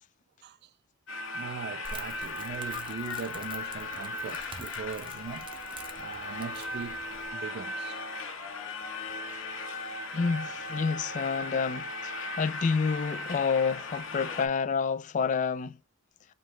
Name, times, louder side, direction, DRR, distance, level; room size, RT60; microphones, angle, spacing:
sound 1, 1.1-14.5, left 2 dB, 90° left, 1.0 m, -37 dB
voice 1, 1.3-5.5 5.9-8.0, right 6 dB, 55° right, 0.4 m, -40 dB
Crackle, 1.8-7.3, right 4 dB, 25° right, 0.7 m, -47 dB
voice 2, 10.1-15.8, left 5 dB, 40° left, 0.3 m, -29 dB
5.2 x 2.3 x 3.6 m
head